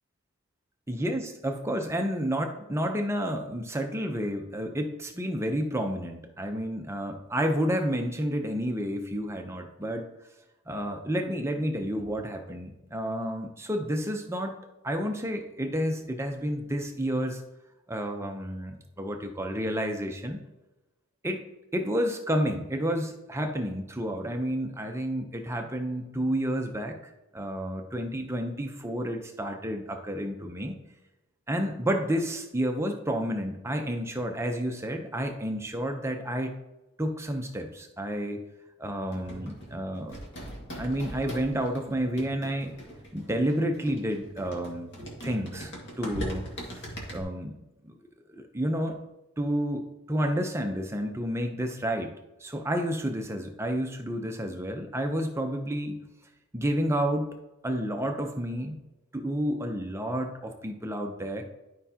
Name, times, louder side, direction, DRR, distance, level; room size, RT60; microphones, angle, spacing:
voice 1, 0.9-10.1 10.7-14.6 14.8-17.4 17.9-20.4 21.2-21.4 21.7-30.8 31.5-36.6 37.0-38.4 38.8-40.2 40.8-42.7 43.1-44.9 45.2-45.7 46.0-46.8 47.1-47.6 48.3-49.0 49.4-52.1 52.4-56.0 56.5-57.4 57.6-58.8 59.1-61.4, equal, 10° right, 4 dB, 0.6 m, -30 dB
sound 1, 39.1-47.2, right 1 dB, 50° left, 1.8 m, -41 dB
11.5 x 5.5 x 2.8 m, 0.99 s
head